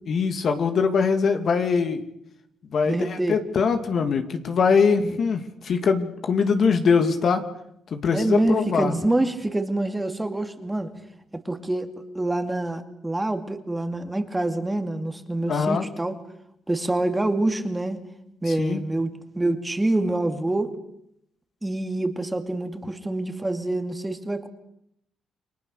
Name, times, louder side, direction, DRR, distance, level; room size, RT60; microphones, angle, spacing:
voice 1, 0.1-2.0 2.7-7.4 7.9-9.0 15.5-15.9 18.5-18.8, left 5 dB, 55° left, 6 dB, 2.5 m, -22 dB
voice 2, 2.9-3.4 5.0-5.2 8.1-10.9 11.3-16.2 16.7-18.0 18.4-20.7 21.6-24.5, right 2 dB, 10° right, 7 dB, 2.4 m, -26 dB
29.5 x 23.0 x 6.7 m, 0.77 s
cardioid pair, 90°, 0 cm